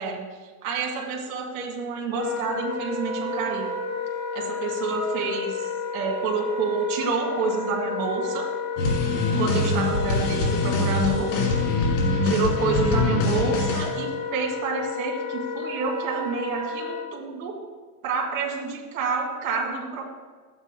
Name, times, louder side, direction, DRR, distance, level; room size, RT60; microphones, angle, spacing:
voice 1, 0.0-3.7 4.3-8.5 9.4-11.3 12.2-17.5 18.0-20.0, right 4 dB, 60° right, 0 dB, 2.1 m, -28 dB
Wind instrument woodwind instrument, 2.1-17.0, left 4 dB, 35° left, 1.8 m, -31 dB
sound 1, 8.8-13.9, left 2 dB, 50° left, 2.0 m, -24 dB
12.0 x 8.9 x 2.2 m, 1.5 s
supercardioid pair, 175°, 46 cm